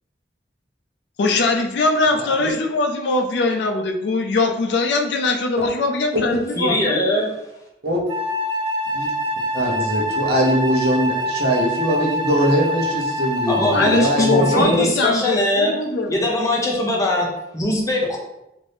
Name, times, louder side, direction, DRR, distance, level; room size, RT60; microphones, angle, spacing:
voice 1, 1.2-7.0 13.6-16.2, left 3 dB, 75° left, 4 dB, 0.4 m, -21 dB
voice 2, 6.6-7.3 13.5-15.7 16.1-18.2, left 1 dB, 20° left, -1 dB, 0.6 m, -21 dB
Wind instrument woodwind instrument, 8.1-14.9, equal, 25° right, 0.3 m, -25 dB
voice 3, 9.5-14.8, equal, 60° right, -2 dB, 0.7 m, -21 dB
2.6 x 2.6 x 3.3 m, 0.87 s
head